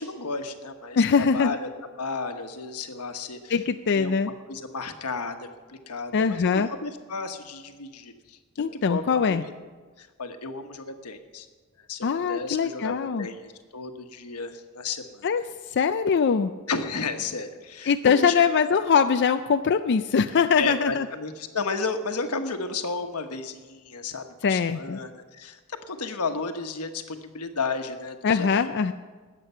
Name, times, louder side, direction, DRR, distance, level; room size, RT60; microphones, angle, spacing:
voice 1, 0.0-1.7 2.0-3.5 3.9-4.1 4.5-9.4 10.0-11.5 11.8-15.3 16.7-18.4 20.6-28.7, left 4 dB, 85° left, 6 dB, 1.2 m, -33 dB
voice 2, 1.0-1.5 3.5-4.3 6.1-6.7 8.6-9.4 12.0-13.3 15.2-16.5 17.9-21.1 24.4-25.0 28.2-28.9, left 6 dB, 50° left, 8 dB, 0.4 m, -22 dB
20.5 x 8.3 x 5.6 m, 1.4 s
head